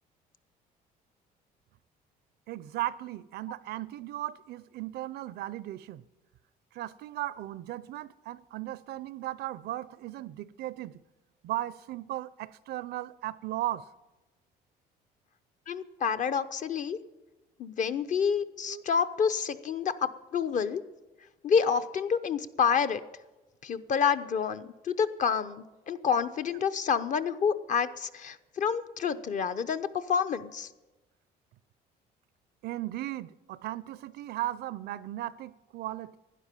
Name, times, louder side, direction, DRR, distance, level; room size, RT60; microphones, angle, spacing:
voice 1, 2.5-6.0 6.7-11.0 11.4-13.9 18.7-18.8 32.6-36.2, right 14 dB, 70° right, 0.5 m, -36 dB
voice 2, 15.7-17.0 17.6-20.8 21.4-23.0 23.6-30.7, left 6 dB, 50° left, 0.8 m, -28 dB
12.0 x 10.0 x 9.2 m
cardioid pair, 110°, 17 cm